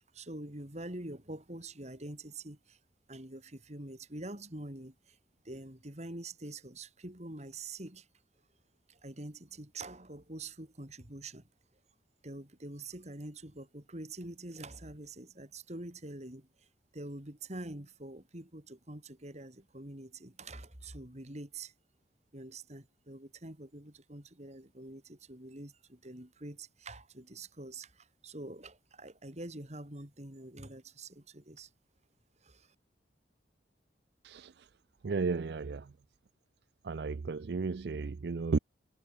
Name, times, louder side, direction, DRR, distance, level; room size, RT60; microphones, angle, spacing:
voice 1, 0.0-2.8 3.1-5.2 5.4-8.1 8.9-11.5 12.2-16.7 16.9-21.7 22.3-31.7 32.4-32.7, right 2 dB, 40° right, 3.5 m, -45 dB
voice 2, 35.0-35.9 36.8-38.6, right 4 dB, 65° right, 0.5 m, -33 dB
head